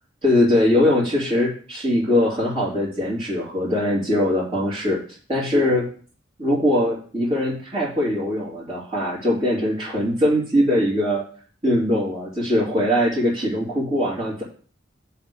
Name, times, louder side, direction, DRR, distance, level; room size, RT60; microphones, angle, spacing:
voice 1, 0.2-5.0 5.3-5.9 6.4-11.2 11.6-14.4, left 1 dB, 35° right, -10 dB, 3.3 m, -21 dB
7.2 x 4.5 x 7.0 m, 0.43 s
head